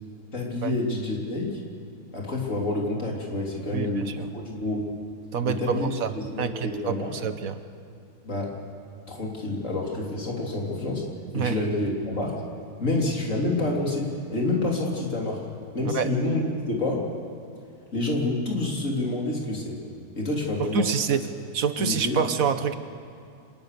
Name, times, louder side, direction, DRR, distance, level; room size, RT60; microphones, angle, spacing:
voice 1, 0.3-1.6 2.1-4.8 5.4-5.9 6.2-7.1 8.2-8.5 9.1-11.0 11.3-12.4 12.8-15.4 15.7-17.0 17.9-19.8 20.2-20.9 21.8-22.2, left 2 dB, 55° left, -2 dB, 3.7 m, -28 dB
voice 2, 3.7-4.1 5.3-6.1 6.4-7.6 11.3-11.6 15.8-16.1 20.6-21.2 21.5-22.8, right 6 dB, 65° right, 10 dB, 1.4 m, -27 dB
25.5 x 19.5 x 6.8 m, 2.5 s
omnidirectional pair, 1.6 m